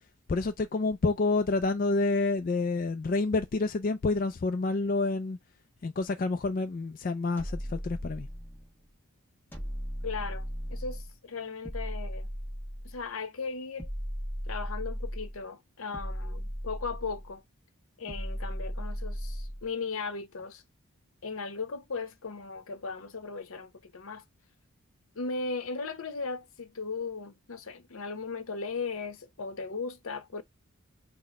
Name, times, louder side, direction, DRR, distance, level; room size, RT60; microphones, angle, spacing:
voice 1, 0.3-5.4 5.8-8.3, left 3 dB, 40° left, 0.3 m, -28 dB
sound 1, 7.4-8.7 9.5-11.1 11.6-13.1 13.8-15.4 15.9-17.3 18.1-19.7, equal, 10° left, 1.1 m, -36 dB
voice 2, 10.0-12.3 12.8-13.9 14.5-17.4 18.0-20.6 21.2-24.2 25.2-30.4, left 4 dB, 70° left, 0.8 m, -37 dB
4.0 x 2.1 x 4.1 m
head